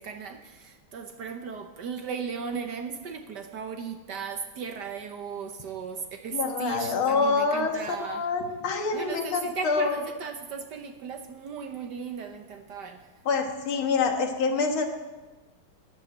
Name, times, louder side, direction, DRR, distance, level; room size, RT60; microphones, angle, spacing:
voice 1, 0.0-8.3 8.9-13.0, right 6 dB, 60° right, 6 dB, 1.3 m, -36 dB
voice 2, 6.3-10.0 13.3-14.9, left 4 dB, 70° left, 4 dB, 2.2 m, -26 dB
11.5 x 11.0 x 8.5 m, 1.2 s
omnidirectional pair, 2.4 m